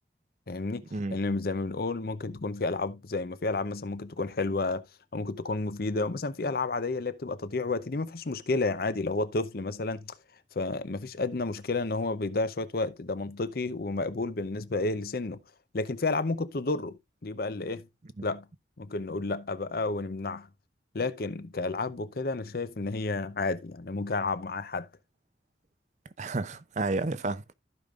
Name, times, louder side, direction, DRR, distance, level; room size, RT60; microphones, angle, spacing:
voice 1, 0.5-4.9 5.1-10.1 10.5-15.4 15.7-17.9 18.2-18.5 18.8-20.5 20.9-24.9, left 3 dB, 55° left, 0.6 m, -31 dB
voice 2, 26.2-27.5, right 3 dB, 40° right, 0.5 m, -31 dB
15.0 x 5.2 x 2.4 m
head